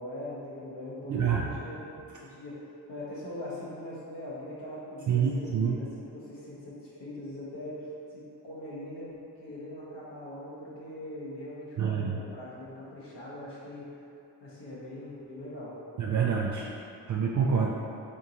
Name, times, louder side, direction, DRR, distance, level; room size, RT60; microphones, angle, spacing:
voice 1, 0.0-1.8 2.2-14.1 14.4-15.8, left 1 dB, 70° left, -8 dB, 1.3 m, -41 dB
voice 2, 1.1-1.5 5.1-5.8 11.8-12.2 16.0-16.7 17.1-17.7, right 6 dB, 45° right, -3 dB, 0.5 m, -27 dB
3.6 x 3.5 x 2.8 m, 2.6 s
supercardioid pair, 50°, 44 cm